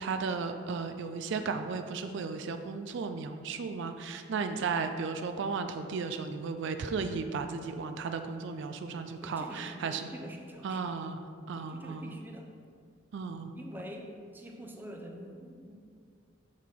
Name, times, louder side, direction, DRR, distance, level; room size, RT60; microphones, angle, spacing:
voice 1, 0.0-10.1 10.6-11.2 11.5-12.2 13.1-13.5, right 5 dB, 65° right, 7 dB, 0.4 m, -35 dB
voice 2, 9.2-10.9 11.4-12.5 13.6-15.7, equal, 10° right, 1 dB, 0.6 m, -46 dB
6.4 x 5.7 x 3.6 m, 2.2 s
head